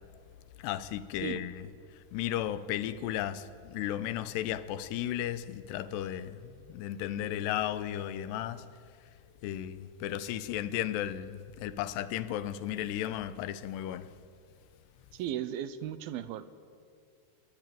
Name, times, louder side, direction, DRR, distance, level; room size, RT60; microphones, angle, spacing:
voice 1, 0.6-8.7 9.4-14.1, left 11 dB, 85° left, 2.9 m, -35 dB
voice 2, 15.1-16.6, right 10 dB, 75° right, 2.5 m, -36 dB
27.5 x 21.0 x 9.3 m
omnidirectional pair, 4.8 m